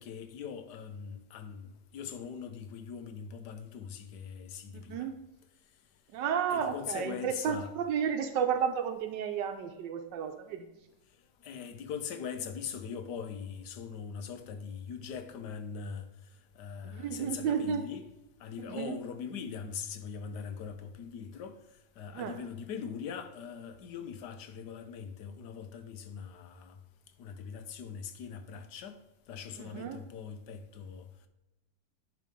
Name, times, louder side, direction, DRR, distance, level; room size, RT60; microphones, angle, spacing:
voice 1, 0.0-5.1 6.5-7.7 11.4-16.1 16.5-18.1 18.4-21.6 22.0-26.8 27.2-29.0 29.3-31.1, left 6 dB, 75° left, 1.3 m, -41 dB
voice 2, 4.7-5.2 6.1-10.7 16.8-17.8 18.7-19.0 22.1-22.4 29.6-30.0, right 7 dB, 80° right, 1.3 m, -32 dB
10.5 x 3.7 x 5.1 m
omnidirectional pair, 1.9 m